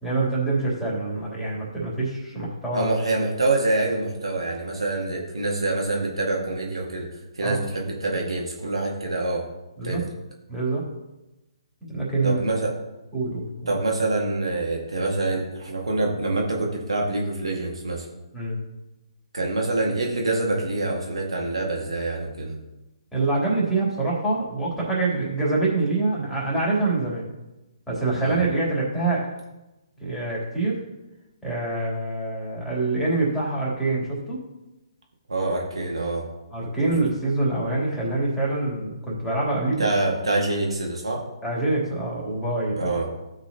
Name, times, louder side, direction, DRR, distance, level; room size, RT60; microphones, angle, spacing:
voice 1, 0.0-2.9 7.4-7.6 9.8-10.0 10.5-10.8 11.8-12.4 13.1-13.7 18.3-18.6 23.1-27.3 27.9-29.2 30.0-30.8 31.4-34.4 36.5-39.8 41.4-43.0, right 2 dB, 5° left, -7 dB, 3.3 m, -25 dB
voice 2, 2.7-9.5 9.8-10.1 12.2-12.8 13.7-18.1 19.3-22.6 28.2-28.4 35.3-36.3 36.8-36.9 39.8-41.3 42.8-43.1, right 2 dB, 80° right, -1 dB, 2.0 m, -26 dB
16.0 x 6.1 x 2.9 m, 1.0 s
figure-of-eight pair, 135°, 3 cm